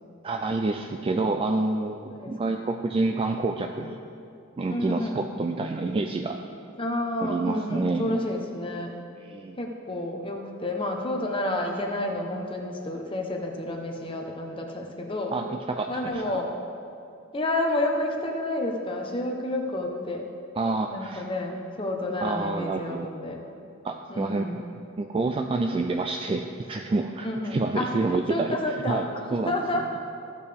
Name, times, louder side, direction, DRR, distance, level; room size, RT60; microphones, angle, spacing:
voice 1, 0.2-4.0 4.6-6.4 7.2-8.2 9.2-9.6 15.3-16.4 20.6-21.2 22.2-23.1 23.8-24.6 25.0-28.6 28.9-29.6, right 3 dB, 25° right, 4 dB, 0.3 m, -28 dB
voice 2, 2.1-2.6 4.7-5.2 6.8-8.9 9.6-15.3 15.9-16.5 17.3-20.3 20.9-23.4 24.1-24.6 27.2-27.9 28.3-29.9, left 1 dB, 25° left, 1 dB, 1.0 m, -30 dB
15.0 x 6.7 x 3.5 m, 2.5 s
head